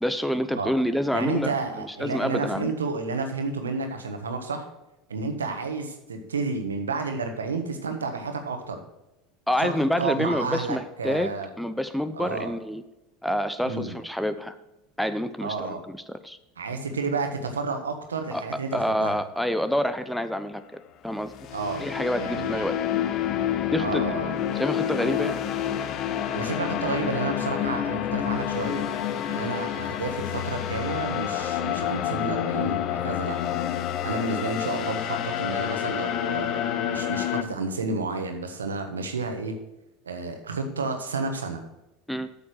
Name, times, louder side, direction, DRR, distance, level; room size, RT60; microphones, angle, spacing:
voice 1, 0.0-2.7 9.5-12.8 13.2-14.6 15.0-16.4 18.3-18.4 18.7-21.3 21.8-22.7 23.7-24.0 24.6-25.4 42.1-42.3, equal, ahead, 11 dB, 0.7 m, -27 dB
voice 2, 1.1-4.7 5.1-8.8 9.6-11.5 12.2-12.5 13.7-13.9 15.4-15.8 16.6-19.1 21.5-21.9 22.2-22.7 23.8-24.3 26.3-28.9 29.3-33.4 34.0-39.5 40.0-41.6, right 3 dB, 90° right, 5 dB, 1.4 m, -31 dB
sound 1, 21.2-37.4, left 10 dB, 50° left, 0.7 m, -28 dB
8.4 x 7.1 x 6.4 m, 0.91 s
hypercardioid pair, 80°, 0 cm